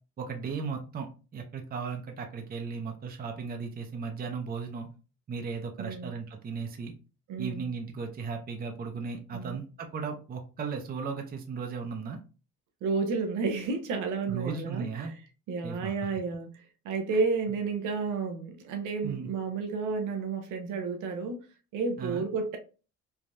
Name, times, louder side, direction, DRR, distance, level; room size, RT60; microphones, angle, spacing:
voice 1, 0.2-4.9 5.3-6.9 7.4-12.2 14.3-15.1 15.6-15.9 17.1-17.2 19.0-19.3 22.0-22.2, right 5 dB, 30° right, 0.5 m, -36 dB
voice 2, 5.8-6.1 7.3-7.7 9.3-9.6 12.8-15.1 15.5-21.4 21.7-22.6, right 4 dB, 85° right, 0.6 m, -31 dB
3.3 x 2.2 x 2.5 m
cardioid pair, 90°, 30 cm